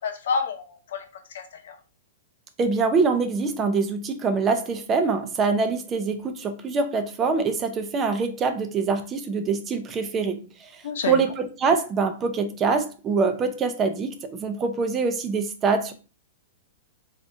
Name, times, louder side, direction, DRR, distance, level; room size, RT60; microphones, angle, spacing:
voice 1, 0.0-1.8 10.8-11.2, left 5 dB, 70° left, 0.8 m, -29 dB
voice 2, 2.6-15.9, right 4 dB, 20° right, 0.5 m, -24 dB
3.5 x 3.5 x 2.6 m
hypercardioid pair, 145°, 0 cm